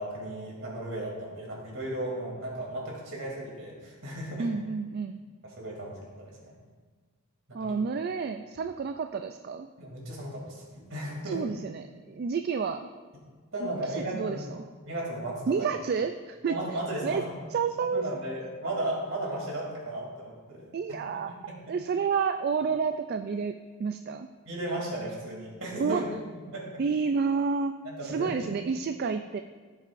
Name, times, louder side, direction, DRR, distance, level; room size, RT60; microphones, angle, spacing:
voice 1, 0.0-4.5 5.4-6.5 7.5-7.7 9.8-11.4 13.5-14.4 14.8-15.7 16.5-17.3 17.9-20.7 21.3-21.4 24.4-26.0 26.5-26.7 27.8-28.5, right 1 dB, 65° right, -3 dB, 3.0 m, -35 dB
voice 2, 4.4-5.2 7.5-9.7 11.3-12.9 13.6-13.7 14.1-14.4 15.5-16.6 17.0-17.2 17.5-18.0 20.7-21.3 21.7-24.3 25.8-26.1 26.8-27.8 28.0-29.4, right 5 dB, 45° right, 8 dB, 0.3 m, -29 dB
16.0 x 7.3 x 2.6 m, 1.4 s
head